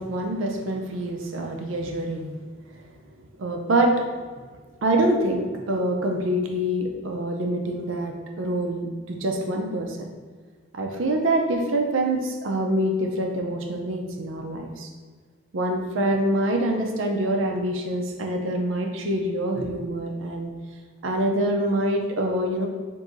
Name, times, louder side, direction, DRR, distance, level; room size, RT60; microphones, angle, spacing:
voice 1, 0.0-2.3 3.4-4.1 4.8-10.1 10.7-14.9 15.5-20.5 21.0-22.7, right 1 dB, 90° right, 2 dB, 0.5 m, -25 dB
6.0 x 2.7 x 2.5 m, 1.5 s
head